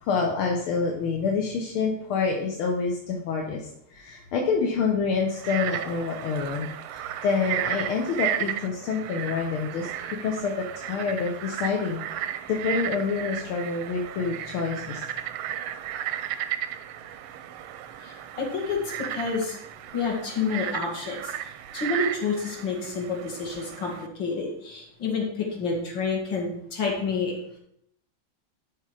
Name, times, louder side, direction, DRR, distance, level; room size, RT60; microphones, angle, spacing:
voice 1, 0.0-9.9 10.2-12.0 12.5-15.1, left 5 dB, 80° left, 1 dB, 1.8 m, -27 dB
Frog, 5.3-24.1, right 11 dB, 85° right, 1.5 m, -34 dB
voice 2, 18.0-19.6 19.9-27.4, left 4 dB, 60° left, -1 dB, 2.8 m, -29 dB
11.5 x 4.9 x 4.9 m, 0.74 s
omnidirectional pair, 2.3 m